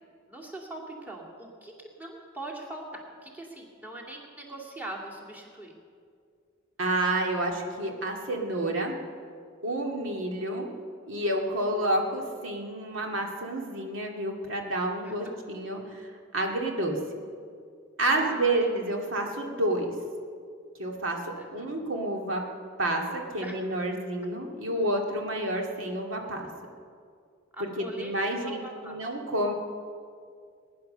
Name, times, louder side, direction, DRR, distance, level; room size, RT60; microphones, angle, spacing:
voice 1, 0.3-5.8 15.0-15.2 18.1-18.7 21.3-21.8 23.4-23.5 27.5-29.0, right 1 dB, 10° right, 0 dB, 2.4 m, -41 dB
voice 2, 6.8-8.9 9.6-10.7 11.1-17.0 18.0-19.9 20.8-21.2 21.5-22.4 22.8-26.5 27.6-29.5, right 1 dB, 90° right, 1 dB, 2.3 m, -29 dB
20.5 x 10.5 x 6.7 m, 2.2 s
head